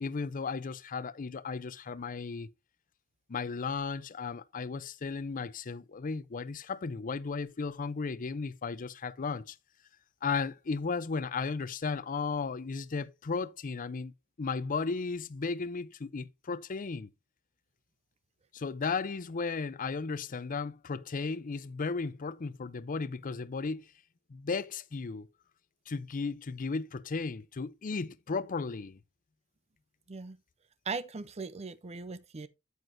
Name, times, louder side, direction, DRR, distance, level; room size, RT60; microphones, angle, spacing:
voice 1, 0.0-2.5 3.3-9.6 10.2-14.1 14.4-17.1 18.5-23.9 24.3-25.3 25.9-29.0, left 4 dB, 40° left, 0.5 m, -35 dB
voice 2, 30.9-32.5, right 4 dB, 30° right, 0.5 m, -39 dB
9.0 x 8.1 x 2.6 m
head